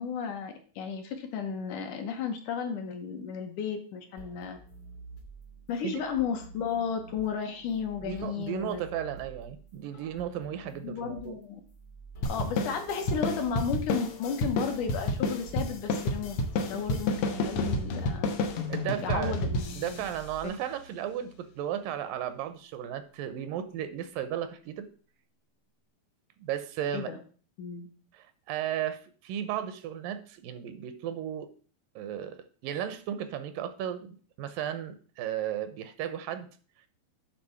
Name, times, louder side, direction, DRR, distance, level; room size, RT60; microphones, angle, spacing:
voice 1, 0.0-4.6 5.7-8.8 10.1-10.2 10.8-11.6 12.3-16.4 16.7-18.3 19.0-20.0 20.4-20.5 26.9-27.2 27.6-27.9, left 6 dB, 70° left, 4 dB, 2.3 m, -33 dB
sound 1, 4.2-20.5, right 3 dB, 50° left, 1.3 m, -50 dB
voice 2, 8.0-11.4 18.7-19.3 19.8-24.9 26.4-27.1 28.1-31.5 32.0-32.4 32.6-36.5, right 10 dB, 80° right, 11 dB, 2.3 m, -35 dB
sound 2, 12.2-21.1, left 2 dB, 90° left, 1.2 m, -31 dB
8.9 x 4.0 x 6.8 m, 0.42 s
omnidirectional pair, 4.1 m